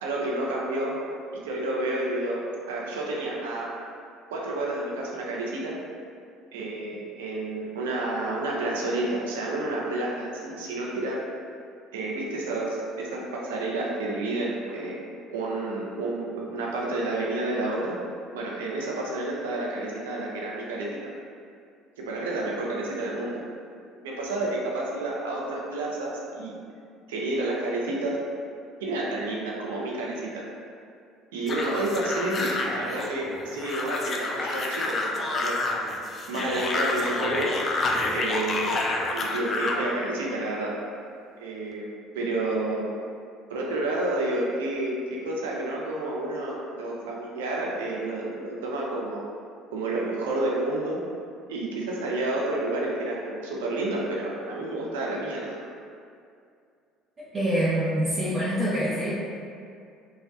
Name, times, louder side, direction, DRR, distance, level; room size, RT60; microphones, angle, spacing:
voice 1, 0.0-1.0 1.3-3.7 4.3-5.8 6.5-11.2 11.9-15.0 15.3-18.0 18.3-21.0 22.0-23.4 24.0-26.6 27.1-28.2 28.8-30.4 31.3-35.6 36.3-37.5 38.1-38.8 39.1-40.7 41.4-42.9 43.5-49.3 49.7-51.0 51.5-55.6, right 2 dB, 85° right, -3 dB, 0.5 m, -30 dB
sound 1, 31.5-39.9, left 2 dB, 40° left, 0.4 m, -29 dB
voice 2, 57.2-59.1, right 1 dB, 40° right, -9 dB, 0.6 m, -25 dB
3.6 x 2.1 x 2.6 m, 2.4 s
hypercardioid pair, 70°, 0 cm